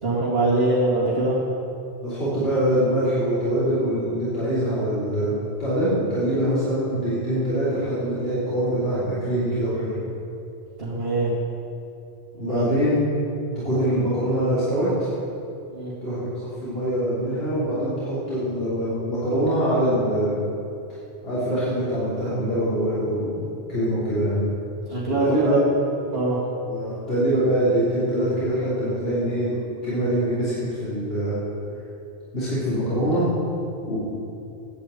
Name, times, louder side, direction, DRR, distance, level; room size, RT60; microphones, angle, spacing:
voice 1, 0.0-1.4 10.8-11.3 12.3-12.7 15.7-16.0 24.9-25.6 26.1-26.4, right 2 dB, 60° right, -10 dB, 2.4 m, -23 dB
voice 2, 2.0-9.9 12.4-13.0 13.6-15.1 16.0-16.3 16.6-20.4 21.2-24.4 25.2-25.6 26.7-29.5 29.8-30.5 30.8-31.4 32.3-33.3 33.8-34.0, right 1 dB, 65° left, -12 dB, 3.5 m, -24 dB
10.5 x 8.5 x 8.3 m, 2.7 s
omnidirectional pair, 1.1 m